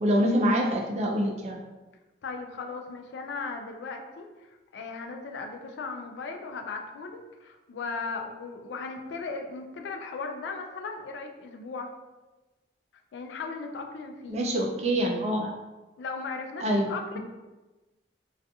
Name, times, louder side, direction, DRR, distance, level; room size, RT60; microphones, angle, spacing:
voice 1, 0.0-1.6 14.3-15.5 16.6-17.2, equal, 40° right, 0 dB, 0.3 m, -26 dB
voice 2, 2.2-11.9 13.1-14.4 16.0-17.2, left 4 dB, 80° left, 4 dB, 0.3 m, -37 dB
2.3 x 2.3 x 2.6 m, 1.2 s
head